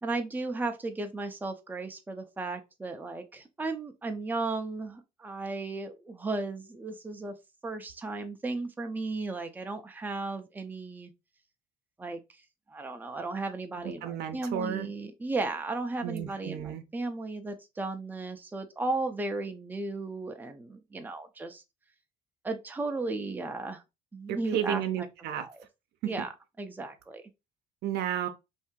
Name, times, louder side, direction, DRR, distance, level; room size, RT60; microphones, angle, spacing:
voice 1, 0.0-7.4 7.6-11.1 12.0-12.2 12.7-21.6 22.4-23.8 24.1-24.8 25.3-25.6 26.0-26.3 26.6-27.2, right 3 dB, 10° right, 0.6 m, -35 dB
voice 2, 13.8-14.9 16.0-16.8 24.3-25.5 26.0-26.1 27.8-28.3, right 10 dB, 75° right, 0.6 m, -32 dB
2.7 x 2.7 x 3.6 m
cardioid pair, 110°, 17 cm